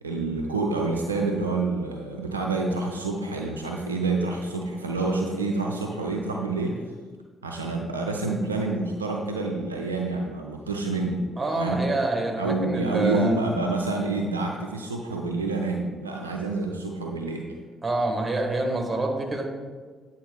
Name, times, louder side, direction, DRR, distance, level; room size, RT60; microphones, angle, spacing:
voice 1, 0.0-6.8 7.4-11.2 11.6-11.9 12.4-17.5, right 3 dB, 85° right, 1 dB, 0.4 m, -28 dB
voice 2, 11.4-13.3 17.8-19.5, right 2 dB, 25° right, 2 dB, 1.3 m, -26 dB
8.6 x 4.0 x 3.8 m, 1.5 s
figure-of-eight pair, 40°, 0 cm